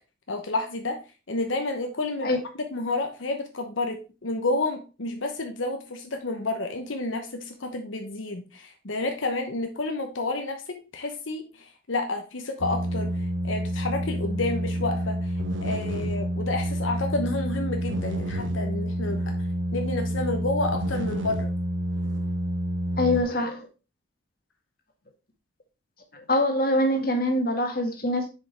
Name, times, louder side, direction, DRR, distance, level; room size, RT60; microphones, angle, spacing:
voice 1, 0.3-1.0 1.3-2.3 2.7-13.1 13.4-15.3 15.6-19.3 19.7-21.5, left 2 dB, 85° left, 5 dB, 1.0 m, -30 dB
sound 1, 12.6-23.2, equal, 80° right, 1.2 m, -28 dB
voice 2, 23.0-23.7 26.1-28.3, left 1 dB, 50° left, 3 dB, 1.7 m, -24 dB
6.9 x 5.2 x 4.4 m, 0.31 s
head